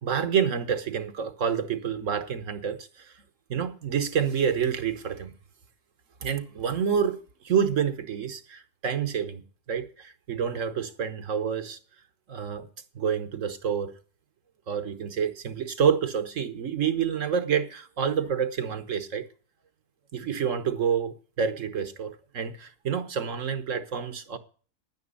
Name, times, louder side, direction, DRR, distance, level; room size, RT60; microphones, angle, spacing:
voice 1, 0.0-3.1 3.5-5.3 6.2-7.2 7.4-9.4 9.7-11.8 12.3-12.7 12.9-13.9 14.7-19.2 20.1-24.4, right 7 dB, 55° right, 1.3 m, -28 dB
10.5 x 9.6 x 5.3 m
omnidirectional pair, 1.7 m